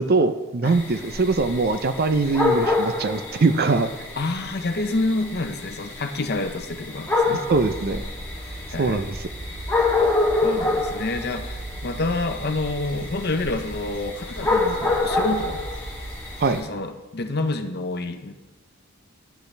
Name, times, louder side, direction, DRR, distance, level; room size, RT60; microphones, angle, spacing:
voice 1, 0.0-3.9 7.5-8.0 8.8-9.1 16.4-16.6, right 3 dB, 45° right, 10 dB, 0.5 m, -22 dB
sound 1, 0.6-16.6, left 3 dB, 10° left, 1.5 m, -27 dB
voice 2, 4.2-7.4 8.7-9.0 10.4-15.6 16.6-18.3, left 2 dB, 45° left, 7 dB, 0.7 m, -28 dB
sound 2, 7.5-16.6, right 1 dB, 85° right, 2.3 m, -38 dB
10.5 x 10.0 x 3.4 m, 1.1 s
head